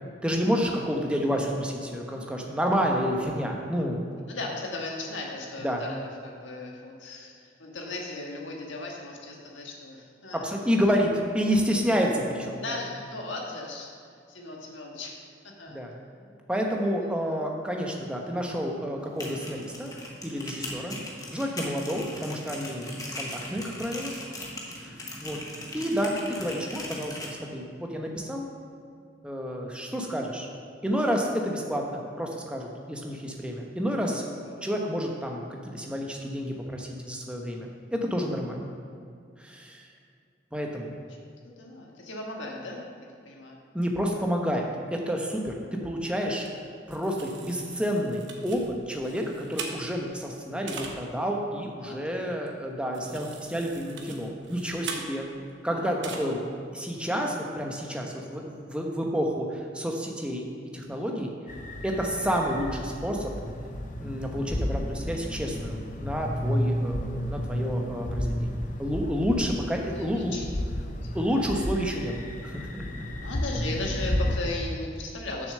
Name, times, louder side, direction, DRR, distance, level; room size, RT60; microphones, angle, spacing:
voice 1, 0.2-4.0 5.6-5.8 10.3-12.8 15.7-15.9 16.5-19.9 20.2-21.0 21.3-24.1 24.8-24.9 25.2-25.4 25.7-28.5 29.2-30.5 30.8-34.3 34.6-38.7 39.4-39.8 40.5-40.9 43.7-45.6 45.8-46.5 46.9-55.2 55.6-56.4 56.7-60.5 60.7-61.3 61.8-63.3 64.0-70.3 71.1-73.0, equal, 5° right, 0 dB, 0.9 m, -29 dB
voice 2, 4.3-10.5 12.6-13.9 14.3-15.8 22.8-23.1 24.6-25.0 33.9-34.7 37.6-37.7 40.6-40.9 41.4-42.9 43.2-43.6 51.8-52.3 55.0-55.1 55.7-56.3 70.0-70.4 70.8-71.0 73.0-75.5, left 2 dB, 75° left, -1 dB, 1.5 m, -37 dB
sound 1, 19.0-27.3, left 1 dB, 20° left, 1.1 m, -39 dB
sound 2, 46.5-46.6 46.9-50.2 50.7-51.0 52.5-52.6 52.9-55.5 56.0-56.2, right 5 dB, 70° right, 1.1 m, -41 dB
sound 3, 61.5-74.4, equal, 40° left, 0.6 m, -32 dB
6.9 x 6.5 x 6.7 m, 2.3 s
head